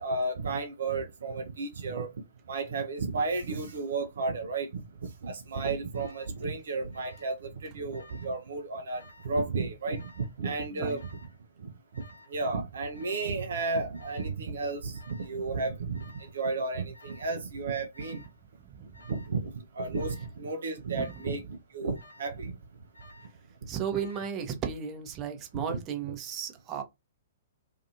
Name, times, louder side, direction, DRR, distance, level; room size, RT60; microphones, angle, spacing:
voice 1, 0.0-2.1 2.5-11.1 11.6-11.7 12.3-18.2 19.1-19.4 19.7-21.4 21.7-22.5 25.5-25.8 26.1-26.2, right 3 dB, 60° right, 0.5 m, -33 dB
Alarm, 5.9-6.4 6.9-7.4 7.7-8.4 8.9-9.4 9.9-10.4 10.9-11.4 11.9-12.4 12.9-13.4 13.9-14.4 14.9-15.4 15.9-16.4 16.9-17.4 17.9-18.4 18.9-19.4 19.9-20.4 20.9-21.4 21.9-22.4 22.9-23.4 23.9-24.4, left 2 dB, 75° left, 0.9 m, -55 dB
voice 2, 23.7-26.8, right 7 dB, 25° right, 0.7 m, -34 dB
2.5 x 2.5 x 2.7 m
figure-of-eight pair, 115°, 0 cm